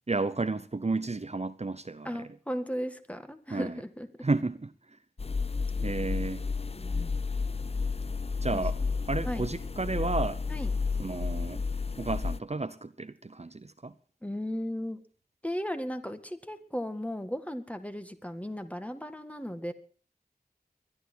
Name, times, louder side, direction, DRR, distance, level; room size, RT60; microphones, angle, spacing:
voice 1, 0.1-2.2 3.5-3.8 4.2-4.7 5.8-6.4 8.4-8.8 9.1-10.4 11.0-11.6 12.0-13.9, right 3 dB, 45° right, 0.9 m, -32 dB
voice 2, 2.0-4.1 6.7-7.2 8.5-8.6 9.2-9.5 10.5-10.7 14.2-15.0 15.4-19.7, equal, 10° left, 1.8 m, -36 dB
sound 1, 5.2-12.4, left 4 dB, 40° left, 0.6 m, -31 dB
22.0 x 12.0 x 4.5 m
wide cardioid pair, 65°, 16 cm